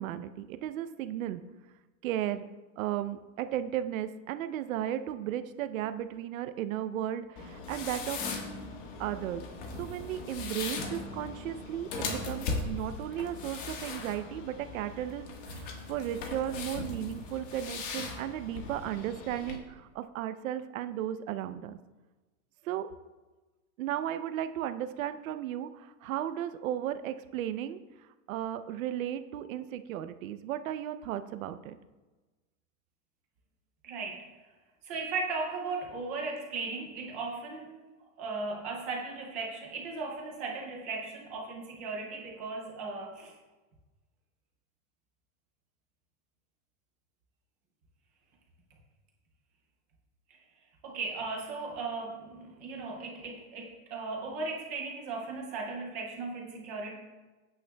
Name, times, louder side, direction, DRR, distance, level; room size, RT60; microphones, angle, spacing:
voice 1, 0.0-1.4 2.0-2.5 2.8-8.2 9.0-9.4 9.8-21.8 22.6-22.9 23.8-27.8 28.3-31.8, right 11 dB, 75° right, 10 dB, 0.7 m, -35 dB
sound 1, 7.4-19.6, left 3 dB, 40° left, 1.4 m, -39 dB
voice 2, 33.8-34.3 34.8-37.8 38.2-43.3 50.8-56.9, right 3 dB, 15° right, 0 dB, 0.4 m, -37 dB
17.0 x 9.1 x 2.2 m, 1.2 s
supercardioid pair, 175°, 41 cm